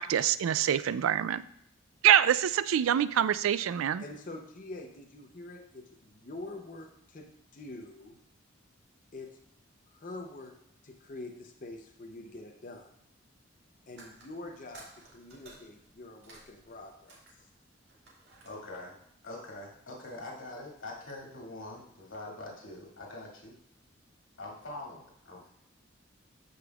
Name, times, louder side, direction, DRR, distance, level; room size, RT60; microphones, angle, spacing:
voice 1, 0.0-1.4 2.0-4.0, right 10 dB, 90° right, 15 dB, 0.3 m, -25 dB
voice 2, 4.0-8.2 9.1-9.3 9.9-10.6 10.8-12.9 13.9-14.9 15.1-17.2, left 2 dB, 40° left, 2 dB, 0.7 m, -45 dB
sound 1, 13.9-17.6 17.9-18.5, right 2 dB, 55° right, 2.2 m, -54 dB
voice 3, 18.4-19.0 19.2-23.6 24.4-25.5, left 2 dB, 85° left, -3 dB, 2.3 m, -44 dB
13.0 x 5.2 x 2.4 m, 0.72 s
head